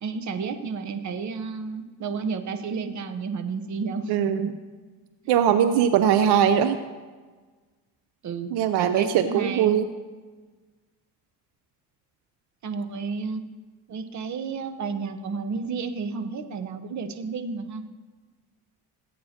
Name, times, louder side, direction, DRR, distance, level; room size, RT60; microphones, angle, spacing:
voice 1, 0.0-4.6 8.2-8.5 8.8-9.8 12.6-13.4 13.9-17.8, right 5 dB, 45° right, 7 dB, 1.0 m, -31 dB
voice 2, 4.1-4.5 5.3-6.8 8.5-9.9, right 9 dB, 75° right, 9 dB, 0.7 m, -21 dB
18.0 x 9.4 x 2.9 m, 1.4 s
cardioid pair, 95°, 40 cm